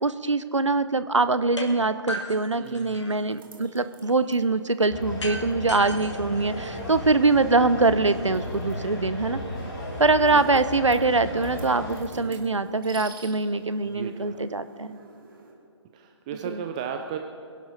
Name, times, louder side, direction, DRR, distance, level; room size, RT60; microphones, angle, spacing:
voice 1, 0.0-9.4 10.0-15.0 16.4-16.6, right 3 dB, 80° right, 13 dB, 0.8 m, -23 dB
sound 1, 1.6-1.7 2.1-3.3 5.2-7.2, left 1 dB, 70° left, 2.0 m, -36 dB
voice 2, 2.6-3.0 10.3-10.6 12.1-12.6 13.8-14.4 15.9-17.2, right 8 dB, 15° right, 5 dB, 0.4 m, -36 dB
sound 2, 2.6-15.5, right 4 dB, 45° right, 2.6 m, -52 dB
sound 3, 4.9-12.0, left 1 dB, 40° left, 4.3 m, -35 dB
22.5 x 11.5 x 4.1 m, 2.7 s
figure-of-eight pair, 140°, 15 cm